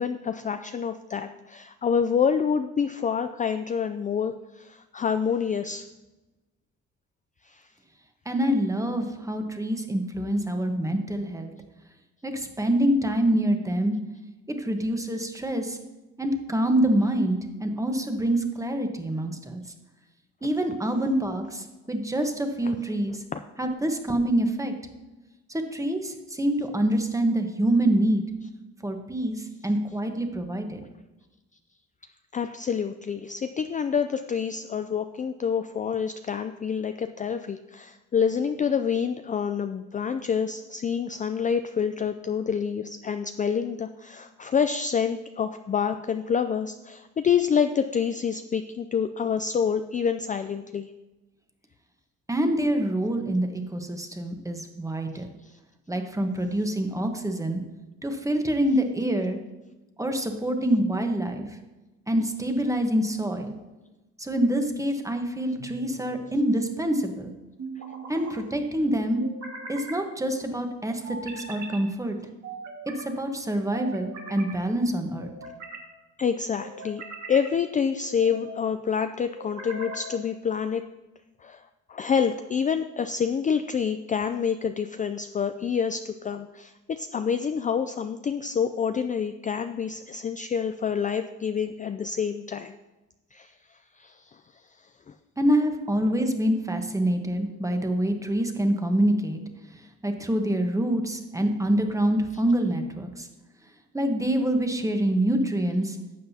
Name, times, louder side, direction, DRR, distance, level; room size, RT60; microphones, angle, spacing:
voice 1, 0.0-5.9 7.4-7.6 22.6-22.7 23.3-23.4 32.3-50.9 55.1-55.6 76.2-77.0 77.3-80.8 81.4-81.6 81.9-92.7 93.3-93.5 94.0-94.4, left 7 dB, 25° left, 9 dB, 0.4 m, -27 dB
voice 2, 8.2-11.5 12.2-13.9 14.5-15.8 16.2-19.6 20.4-23.2 23.6-24.7 25.5-28.2 28.8-30.8 52.3-55.4 55.9-57.6 58.0-59.4 60.0-61.6 62.1-63.5 64.2-67.3 68.1-69.2 69.7-72.2 72.9-75.3 95.4-99.4 99.7-103.3 103.9-106.0, right 1 dB, 10° right, 5 dB, 1.1 m, -26 dB
sound 1, 65.5-66.2 67.6-68.3 69.2-70.0 71.0-71.8 72.4-73.1 73.7-74.6 75.2-75.9 76.6-77.5 78.1-78.6 79.4-80.2, right 3 dB, 65° right, 1.9 m, -40 dB
11.5 x 7.6 x 2.8 m, 1.1 s
cardioid pair, 90°, 30 cm